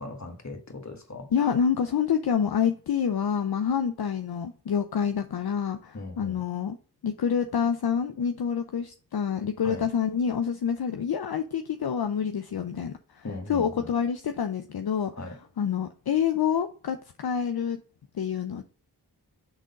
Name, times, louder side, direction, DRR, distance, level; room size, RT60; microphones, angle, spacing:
voice 1, 0.0-1.3 5.9-6.4 9.6-9.9 13.2-13.9 15.1-15.4, left 2 dB, 45° left, 1.6 m, -38 dB
voice 2, 1.3-6.8 7.0-15.1 15.6-17.8 18.1-18.6, left 7 dB, 70° left, 0.6 m, -27 dB
6.2 x 3.8 x 5.3 m
wide cardioid pair, 50°, 39 cm